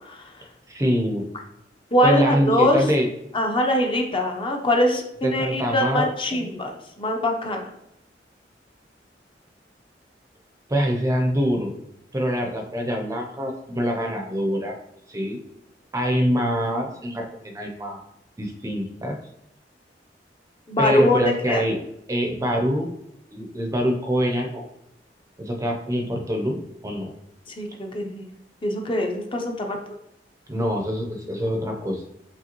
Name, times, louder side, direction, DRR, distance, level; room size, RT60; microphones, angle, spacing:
voice 1, 0.0-0.5 1.9-2.8 3.3-7.7 20.7-21.6 27.5-28.3 28.6-29.8, left 1 dB, 30° left, 2 dB, 0.7 m, -23 dB
voice 2, 0.7-1.3 2.0-3.1 5.2-6.4 10.7-11.7 12.1-14.8 15.1-15.4 15.9-18.0 18.4-19.2 20.8-21.8 22.1-22.9 23.3-24.6 25.4-26.6 26.8-27.1 30.5-32.0, equal, 20° right, 1 dB, 0.6 m, -24 dB
5.0 x 3.5 x 2.9 m, 0.79 s
head